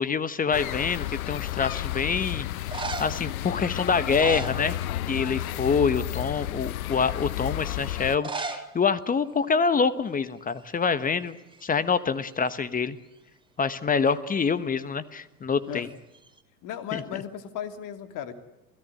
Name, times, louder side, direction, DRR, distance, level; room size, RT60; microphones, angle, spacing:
voice 1, 0.0-2.5 3.0-4.7 5.1-13.0 13.6-15.9 16.9-17.0, left 5 dB, 20° left, 14 dB, 1.2 m, -26 dB
sound 1, 0.5-8.2, left 15 dB, 65° left, 0.8 m, -32 dB
sound 2, 1.0-1.5 2.5-3.3 3.9-5.2 5.4-5.8 6.4-6.5 8.1-8.7 9.0-9.1 9.2-9.3 10.1-10.3 10.6-11.8 15.8-16.4, right 4 dB, 10° right, 2.7 m, -37 dB
voice 2, 16.6-18.3, left 10 dB, 45° left, 8 dB, 2.9 m, -35 dB
28.5 x 17.0 x 9.1 m, 0.94 s
figure-of-eight pair, 80°, 46 cm